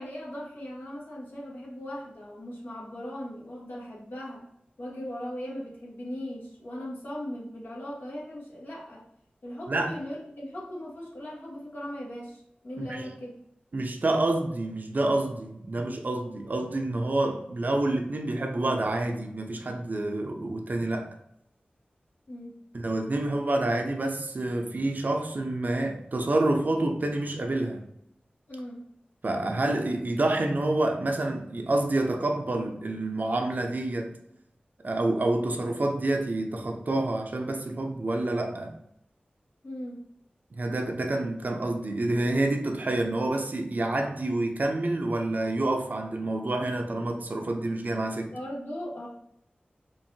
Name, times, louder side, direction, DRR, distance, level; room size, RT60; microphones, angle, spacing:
voice 1, 0.0-4.5 4.8-9.0 9.4-13.4 22.3-22.6 28.5-28.9 39.6-40.0 48.3-49.1, equal, 70° left, -5 dB, 1.4 m, -38 dB
voice 2, 12.8-13.1 13.7-21.1 22.8-27.8 29.2-34.1 34.8-38.7 40.6-48.3, right 2 dB, 55° right, 3 dB, 0.6 m, -28 dB
4.6 x 2.6 x 2.7 m, 0.76 s
wide cardioid pair, 50°, 3 cm